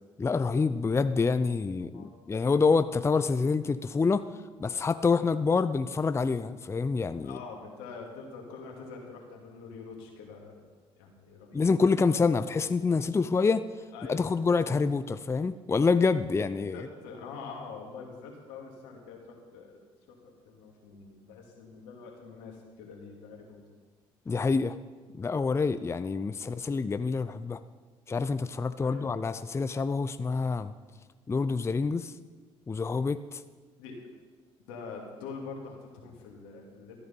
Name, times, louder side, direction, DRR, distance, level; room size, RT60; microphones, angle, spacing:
voice 1, 0.2-4.2 4.6-7.4 11.5-13.6 14.1-16.9 24.3-24.8 25.2-27.6 28.1-30.7 31.3-32.1 32.7-33.4, left 4 dB, 20° left, 12 dB, 0.5 m, -27 dB
voice 2, 7.2-10.6 11.0-11.8 13.9-14.3 16.7-19.8 20.1-20.2 20.4-23.6 28.8-29.3 33.8-34.0 34.7-37.0, left 4 dB, 90° left, 0 dB, 2.5 m, -45 dB
14.0 x 9.5 x 5.4 m, 1.4 s
supercardioid pair, 70°, 12 cm